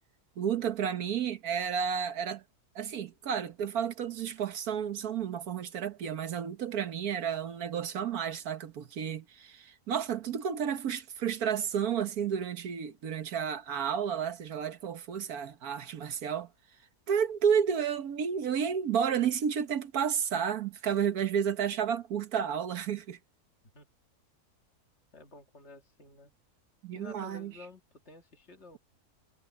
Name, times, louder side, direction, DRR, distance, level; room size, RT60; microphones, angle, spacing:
voice 1, 0.4-2.4 2.7-16.5 17.1-23.2 26.8-27.5, right 8 dB, 75° right, 1.6 m, -31 dB
voice 2, 25.1-26.3 26.9-28.8, left 3 dB, 45° left, 2.1 m, -51 dB
omnidirectional pair, 1.6 m